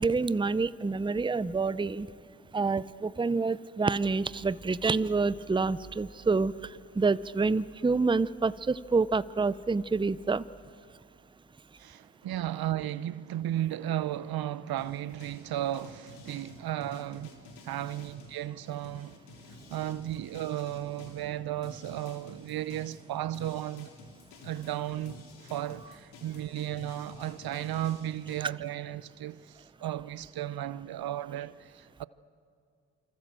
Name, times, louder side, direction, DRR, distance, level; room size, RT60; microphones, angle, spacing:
voice 1, 0.0-2.1 2.5-10.4, right 4 dB, 10° right, 0.7 m, -27 dB
voice 2, 11.8-17.3 17.7-19.2 19.7-23.9 24.4-32.1, right 12 dB, 65° right, 0.8 m, -34 dB
sound 1, 14.8-21.3 21.6-28.5, left 3 dB, 80° left, 3.7 m, -51 dB
28.0 x 25.5 x 7.6 m
supercardioid pair, 50°, 40 cm